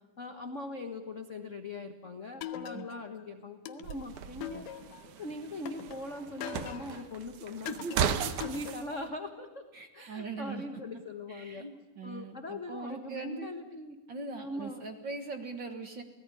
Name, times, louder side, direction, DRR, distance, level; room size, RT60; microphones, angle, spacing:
voice 1, 0.2-4.7 5.2-9.6 9.9-11.7 12.0-14.0 14.4-14.8, left 2 dB, 60° left, 6 dB, 0.7 m, -41 dB
sound 1, 2.4-3.2 3.7-5.1 5.7-7.1 7.7-9.1, left 10 dB, 85° left, 2.7 m, -42 dB
sound 2, 3.8-8.8, right 8 dB, 70° right, 2.5 m, -36 dB
voice 2, 7.6-8.0 9.7-10.6 11.3-13.5 14.1-16.0, right 3 dB, 45° right, 6 dB, 1.8 m, -40 dB
29.5 x 18.0 x 9.9 m, 1.2 s
omnidirectional pair, 3.8 m